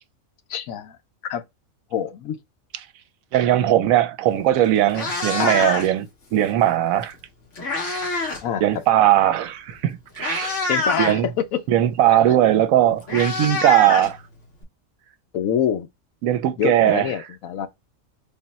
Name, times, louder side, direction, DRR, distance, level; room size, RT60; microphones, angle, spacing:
voice 1, 0.5-1.0 1.3-1.4 1.9-2.4 5.4-5.7 8.4-8.6 10.7-11.4 15.3-15.9 16.6-17.7, left 9 dB, 80° left, 1.1 m, -25 dB
voice 2, 3.3-6.1 6.3-7.2 8.6-10.6 11.0-11.3 11.7-14.2 16.2-17.1, right 12 dB, 80° right, 1.0 m, -19 dB
Meow, 4.3-4.4 4.8-6.1 7.1-8.5 8.7-9.0 9.7-9.8 10.1-11.1 12.4-12.5 12.7-14.6, left 2 dB, 65° left, 1.4 m, -26 dB
3.8 x 2.1 x 4.0 m
omnidirectional pair, 1.4 m